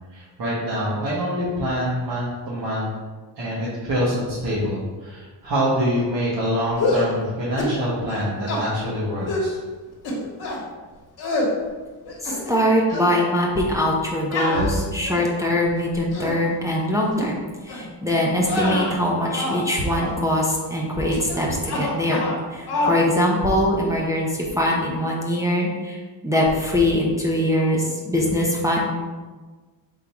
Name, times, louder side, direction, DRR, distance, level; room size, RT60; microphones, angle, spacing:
voice 1, 0.1-2.9 3.4-9.6, equal, 45° right, -9 dB, 1.3 m, -25 dB
sound 1, 6.7-7.1 7.6-7.8 8.1-8.6 9.3-9.5 10.0-10.6 11.2-11.5 12.0-12.6 12.9-13.2 14.3-15.4 15.9-16.4 17.1-17.3 17.7-17.9 18.4-19.7 19.9-20.2 21.1-21.4 21.6-22.4 22.7-23.0, left 2 dB, 60° left, 1.3 m, -26 dB
voice 2, 12.2-17.4 17.6-22.2 22.5-26.0 26.2-28.8, left 1 dB, 5° right, -4 dB, 0.7 m, -22 dB
3.8 x 2.8 x 4.7 m, 1.3 s
cardioid pair, 100°, 45 cm